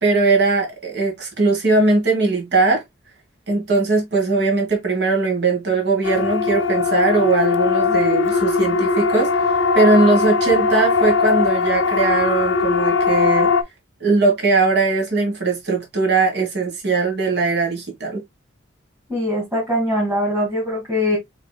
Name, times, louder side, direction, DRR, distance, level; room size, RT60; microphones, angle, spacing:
voice 1, 0.0-2.8 3.5-9.5 9.7-13.5 14.0-18.2, right 3 dB, 55° right, 1.6 m, -19 dB
Siren, 6.0-13.6, left 4 dB, 65° left, 0.5 m, -19 dB
voice 2, 19.1-21.2, left 1 dB, 15° right, 2.1 m, -22 dB
5.6 x 2.9 x 2.2 m
head